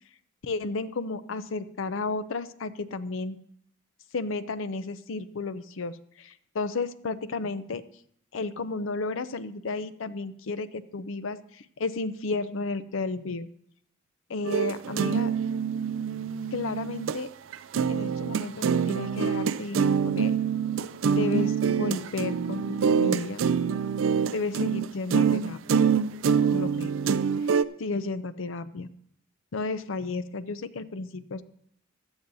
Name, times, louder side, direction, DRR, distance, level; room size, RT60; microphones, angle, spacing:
voice 1, 0.4-3.4 4.1-7.8 8.3-13.5 14.3-15.3 16.5-17.3 17.9-20.4 21.1-23.4 24.3-25.9 26.4-26.9 27.8-28.9 29.5-31.4, left 3 dB, 80° left, 13 dB, 0.6 m, -33 dB
sound 1, 14.4-17.2 17.5-27.6, right 6 dB, 80° right, 0.4 m, -25 dB
16.0 x 11.0 x 2.7 m, 0.70 s
head